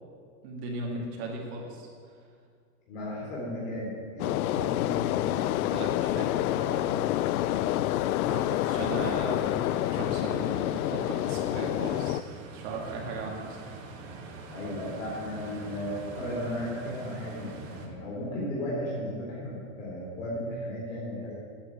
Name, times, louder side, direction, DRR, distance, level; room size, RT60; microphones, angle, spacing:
voice 1, 0.4-2.2 5.7-7.1 8.2-12.2 12.5-13.6, right 3 dB, 45° right, -1 dB, 2.1 m, -37 dB
voice 2, 2.9-5.5 14.5-21.3, equal, 65° left, -5 dB, 3.9 m, -35 dB
sound 1, 4.2-12.2, left 14 dB, 90° left, 0.5 m, -28 dB
sound 2, 7.0-17.9, right 3 dB, 65° right, 2.4 m, -45 dB
10.0 x 8.2 x 8.7 m, 2.1 s
supercardioid pair, 175°, 42 cm